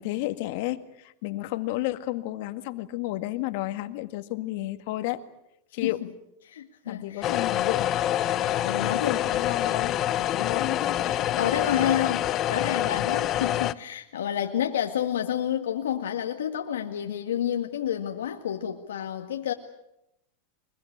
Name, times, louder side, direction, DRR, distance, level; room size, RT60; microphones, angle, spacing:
voice 1, 0.0-5.2 5.7-6.0 6.9-7.9 8.8-10.0 10.3-11.3, left 17 dB, 60° left, 9 dB, 1.9 m, -32 dB
voice 2, 6.4-7.4 8.3-9.2 10.4-10.5 11.0-19.5, left 10 dB, 90° left, 4 dB, 1.9 m, -29 dB
sound 1, 7.2-13.7, left 12 dB, 40° left, 0.9 m, -26 dB
24.0 x 22.0 x 8.7 m, 0.83 s
hypercardioid pair, 120°, 0 cm